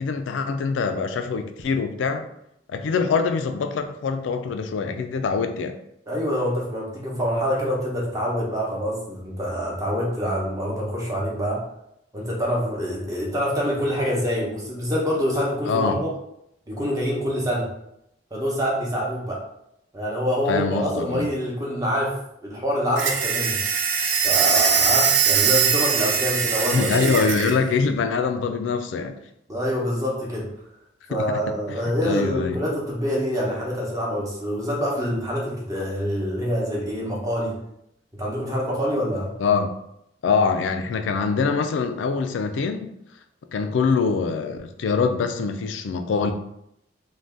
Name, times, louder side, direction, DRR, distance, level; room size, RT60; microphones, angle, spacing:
voice 1, 0.0-2.3 2.7-5.7 15.7-16.0 20.5-21.3 26.7-29.2 31.2-31.4 31.7-31.8 32.0-32.6 39.4-39.7 40.2-42.9 43.5-46.3, left 5 dB, 75° left, 7 dB, 0.3 m, -24 dB
voice 2, 6.1-11.6 12.1-16.1 16.7-17.7 18.3-19.4 19.9-22.1 22.4-23.6 24.2-27.3 29.5-30.5 31.1-37.6 38.2-39.3, equal, 20° right, -4 dB, 0.7 m, -26 dB
sound 1, 23.0-27.6, right 6 dB, 75° right, 0.4 m, -21 dB
2.6 x 2.2 x 3.4 m, 0.78 s
head